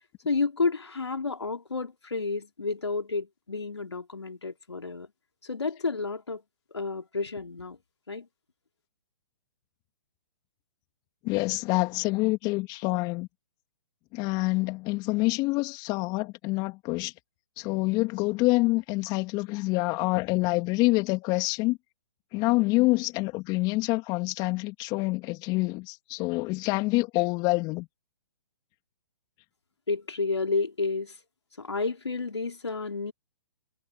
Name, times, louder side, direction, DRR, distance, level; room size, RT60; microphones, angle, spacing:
voice 1, 0.2-5.1 5.4-6.4 6.7-7.8 8.1-8.3 29.9-31.2 31.6-33.1, left 4 dB, 90° left, 3.2 m, -30 dB
voice 2, 11.2-13.3 14.1-17.1 17.6-21.8 22.3-27.9, left 23 dB, 30° left, 3.2 m, -26 dB
hypercardioid pair, 130°, 14 cm